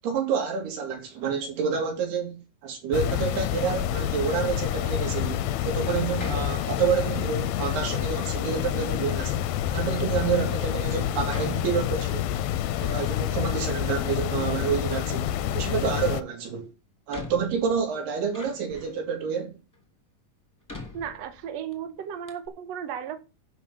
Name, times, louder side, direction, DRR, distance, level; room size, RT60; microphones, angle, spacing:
voice 1, 0.0-12.3 12.8-16.7 17.1-19.5, right 6 dB, 75° right, 4.7 m, -28 dB
sound 1, 2.9-16.2, left 11 dB, 80° left, 2.4 m, -28 dB
Door, 6.2-7.2 7.8-8.5 9.2-9.3 10.0-10.1 11.3-12.4 12.8-13.8 14.1-15.0 16.3-16.4 17.1-19.1 19.7-19.8 20.7-21.7 22.0-22.1 22.3-22.5, left 2 dB, 5° left, 1.9 m, -42 dB
voice 2, 20.9-23.2, right 8 dB, 60° right, 1.9 m, -35 dB
11.5 x 5.2 x 6.9 m
omnidirectional pair, 4.7 m